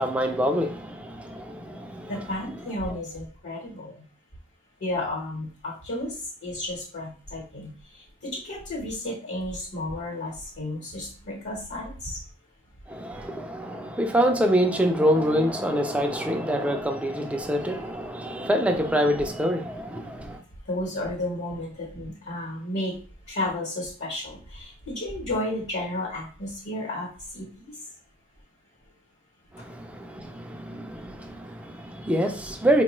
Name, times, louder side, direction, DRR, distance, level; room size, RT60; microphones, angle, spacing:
voice 1, 0.0-2.1 12.9-20.4 29.5-32.8, equal, 5° right, 0.4 m, -26 dB
voice 2, 2.0-4.0 4.8-12.2 20.6-23.0 23.3-27.9 29.6-29.7 30.8-30.9, left 1 dB, 60° left, 1.0 m, -33 dB
4.5 x 2.2 x 3.0 m
head